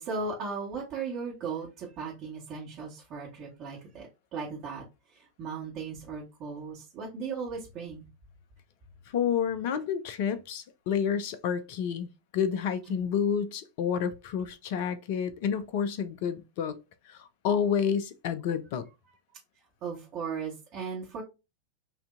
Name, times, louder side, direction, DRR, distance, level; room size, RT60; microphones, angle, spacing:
voice 1, 0.0-8.1 12.9-13.1 19.8-21.2, right 5 dB, 35° right, 1.3 m, -37 dB
voice 2, 9.1-12.1 12.3-16.8 17.1-18.9, left 7 dB, 50° left, 0.5 m, -29 dB
5.8 x 2.7 x 2.4 m
figure-of-eight pair, 90°, 0 cm